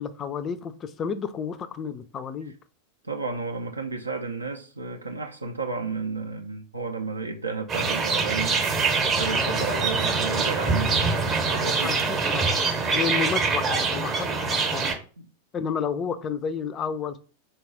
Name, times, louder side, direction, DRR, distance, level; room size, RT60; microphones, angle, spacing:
voice 1, 0.0-2.5 9.3-9.9 11.8-14.9 15.5-17.2, left 6 dB, 25° left, 0.4 m, -31 dB
voice 2, 3.0-8.7 9.1-12.0 15.2-15.3, right 4 dB, 80° right, 0.4 m, -32 dB
sound 1, 7.7-14.9, right 4 dB, 25° right, 0.8 m, -24 dB
3.9 x 2.3 x 3.8 m
figure-of-eight pair, 90°, 0 cm